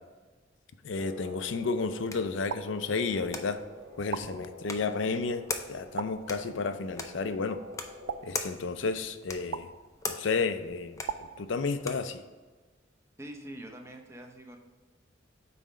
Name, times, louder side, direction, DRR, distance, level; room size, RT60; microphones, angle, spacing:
voice 1, 0.8-3.6 4.0-7.6 8.2-9.7 10.1-12.2, left 4 dB, 70° left, 10 dB, 0.5 m, -32 dB
sound 1, 0.9-8.2, left 1 dB, 35° right, 1.7 m, -48 dB
sound 2, 1.4-12.2, left 3 dB, 15° left, 0.5 m, -43 dB
sound 3, 2.5-3.4 4.1-5.0 6.0-6.8 8.1-9.0 9.5-10.3 11.1-12.1, right 7 dB, 80° right, 0.3 m, -41 dB
voice 2, 13.2-14.6, right 1 dB, 15° right, 2 dB, 0.7 m, -44 dB
5.6 x 4.2 x 4.9 m, 1.3 s
head